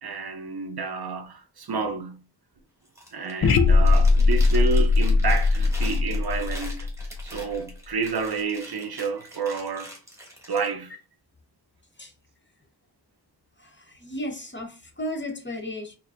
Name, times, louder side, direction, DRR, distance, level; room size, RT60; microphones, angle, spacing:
voice 1, 0.0-2.2 3.1-6.9 7.2-9.9 10.5-10.9, right 4 dB, 60° right, 0.6 m, -30 dB
Chewing mastication, 2.9-3.4 3.7-10.7, equal, 5° right, 1.2 m, -44 dB
sound 1, 3.4-7.5, left 3 dB, 55° left, 0.5 m, -20 dB
voice 2, 13.6-16.0, left 1 dB, 25° left, 0.8 m, -34 dB
4.4 x 2.7 x 2.5 m
wide cardioid pair, 55°, 43 cm